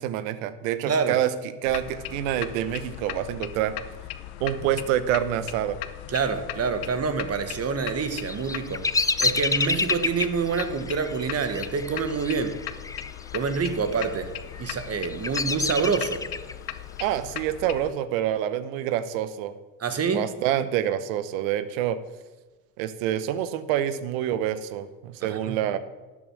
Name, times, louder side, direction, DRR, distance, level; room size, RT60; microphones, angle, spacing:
voice 1, 0.0-1.3 1.6-3.8 4.4-5.8 17.0-19.6 20.1-22.0 22.8-25.8, right 11 dB, 80° right, 14 dB, 0.9 m, -27 dB
sound 1, 1.6-17.9, left 13 dB, 75° left, 0.9 m, -38 dB
voice 2, 6.1-8.9 9.2-12.6 13.3-14.3 14.6-16.2 19.8-20.2 25.2-25.6, right 5 dB, 40° right, 9 dB, 1.5 m, -27 dB
Bird vocalization bird call bird song, 8.1-13.1 13.4-14.0 14.5-16.5, left 3 dB, 10° left, 0.4 m, -28 dB
12.0 x 7.4 x 6.3 m, 1.2 s
supercardioid pair, 75°, 39 cm